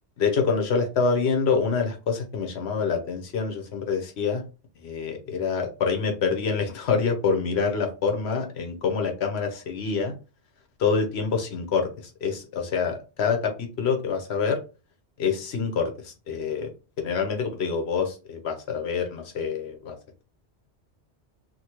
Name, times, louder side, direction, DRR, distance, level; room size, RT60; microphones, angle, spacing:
voice 1, 0.2-4.4 4.8-10.1 10.8-14.6 15.2-16.7 17.0-19.9, left 5 dB, 70° left, 4 dB, 1.1 m, -26 dB
2.9 x 2.7 x 2.9 m, 0.32 s
omnidirectional pair, 1.2 m